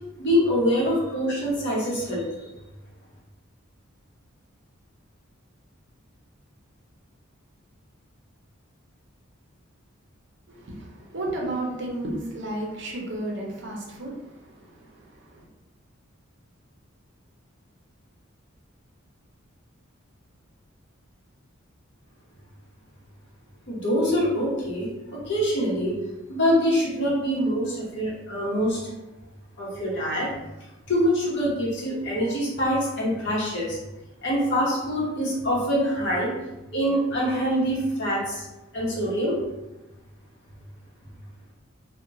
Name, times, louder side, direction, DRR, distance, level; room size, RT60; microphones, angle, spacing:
voice 1, 0.2-2.5 23.7-26.0 26.3-28.8 29.6-30.3 30.9-33.8 34.2-36.3 36.7-38.4 38.7-39.4, equal, 55° left, -5 dB, 0.9 m, -25 dB
voice 2, 10.5-15.5, right 1 dB, 55° right, -1 dB, 0.6 m, -33 dB
2.8 x 2.2 x 2.5 m, 0.98 s
head